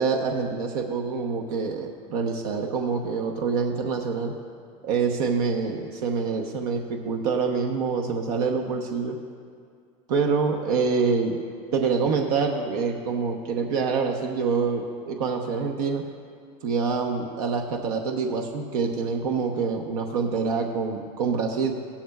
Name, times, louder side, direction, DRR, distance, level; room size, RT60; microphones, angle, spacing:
voice 1, 0.0-4.3 4.8-9.2 10.1-11.4 11.7-16.0 16.6-21.7, right 5 dB, 90° right, 3 dB, 1.0 m, -26 dB
16.0 x 13.0 x 2.3 m, 2.2 s
supercardioid pair, 150°, 18 cm